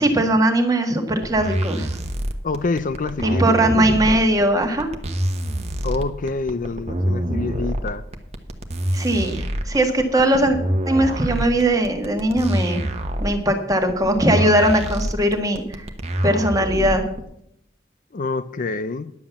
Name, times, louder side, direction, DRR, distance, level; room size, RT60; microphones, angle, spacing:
voice 1, 0.0-1.9 3.2-4.9 8.9-10.6 10.9-12.8 13.2-15.9 16.2-17.0, right 1 dB, 20° right, 1.5 m, -19 dB
sound 1, 1.2-17.2, right 1 dB, 35° right, 1.0 m, -26 dB
voice 2, 2.4-4.2 5.8-8.0 18.1-19.1, left 3 dB, 50° left, 0.5 m, -26 dB
10.5 x 7.6 x 7.0 m
head